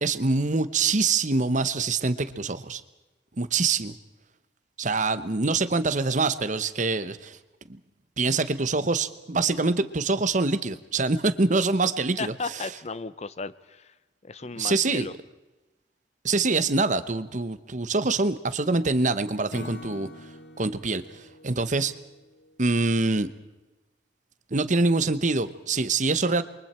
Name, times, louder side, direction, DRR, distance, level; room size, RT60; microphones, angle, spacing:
voice 1, 0.0-2.8 3.4-3.9 4.8-7.4 7.7-7.8 8.2-12.3 14.6-15.1 16.2-20.1 20.6-21.9 22.6-23.3 24.5-26.4, right 3 dB, 45° right, 13 dB, 1.0 m, -25 dB
voice 2, 12.2-13.9 14.2-15.1, left 4 dB, 40° left, 15 dB, 0.7 m, -35 dB
Acoustic guitar / Strum, 19.5-22.8, left 1 dB, 75° left, 1.6 m, -45 dB
28.5 x 23.5 x 4.4 m, 1.1 s
head